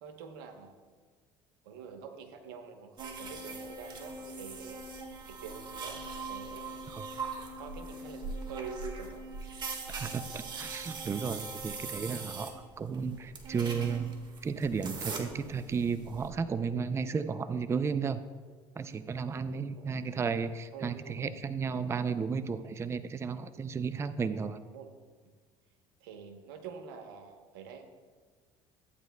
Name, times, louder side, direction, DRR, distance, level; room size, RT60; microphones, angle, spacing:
voice 1, 0.0-0.7 1.6-6.7 7.6-8.2 8.5-9.4 19.5-20.1 20.7-21.4 24.7-24.9 26.0-27.8, right 5 dB, 85° right, 6 dB, 1.0 m, -46 dB
sound 1, 3.0-16.3, right 3 dB, 40° right, 1.6 m, -41 dB
voice 2, 9.9-18.2 18.8-24.6, right 5 dB, 20° right, 12 dB, 0.4 m, -33 dB
13.5 x 9.0 x 2.2 m, 1.5 s
supercardioid pair, 90°, 12 cm